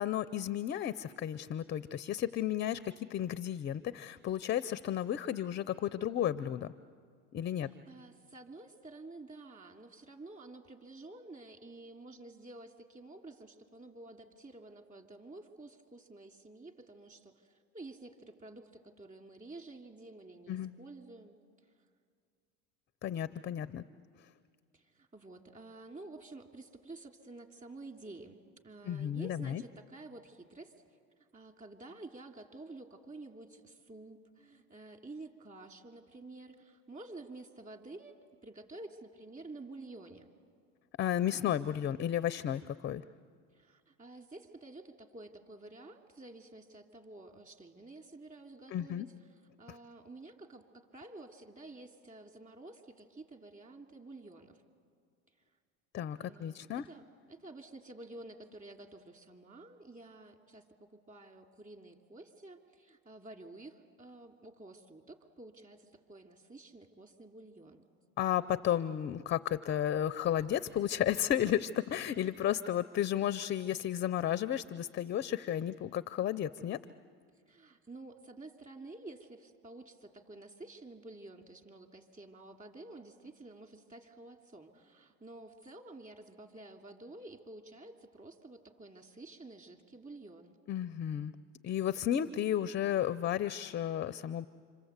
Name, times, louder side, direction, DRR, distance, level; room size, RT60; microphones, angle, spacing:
voice 1, 0.0-6.7 7.3-7.7 20.5-20.7 23.0-23.8 28.9-29.6 41.0-43.0 48.7-49.1 55.9-56.8 68.2-76.8 90.7-91.3 91.6-94.5, left 10 dB, 30° left, 14 dB, 0.6 m, -33 dB
voice 2, 7.5-21.4 21.7-21.8 24.7-28.4 28.6-30.7 31.2-38.2 38.4-40.3 43.5-54.6 56.2-67.9 77.5-90.6, right 2 dB, 20° right, 3 dB, 2.9 m, -51 dB
27.0 x 27.0 x 8.1 m, 2.2 s
supercardioid pair, 100°, 37 cm